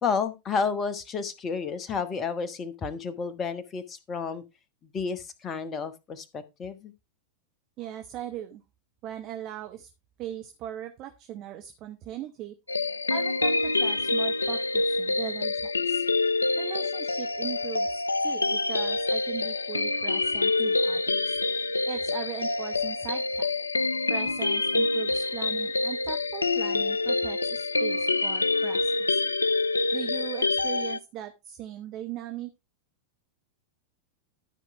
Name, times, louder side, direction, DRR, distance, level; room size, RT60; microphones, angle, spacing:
voice 1, 0.0-4.4 4.9-6.9, left 5 dB, 25° left, 1.4 m, -31 dB
voice 2, 7.8-8.6 9.0-9.9 10.2-12.6 13.1-16.0 16.6-21.4 21.9-23.5 24.1-29.2 29.9-32.5, right 11 dB, 35° right, 1.1 m, -39 dB
sound 1, 12.7-31.0, left 3 dB, 80° left, 0.4 m, -26 dB
12.5 x 5.0 x 4.5 m
figure-of-eight pair, 90°, 0 cm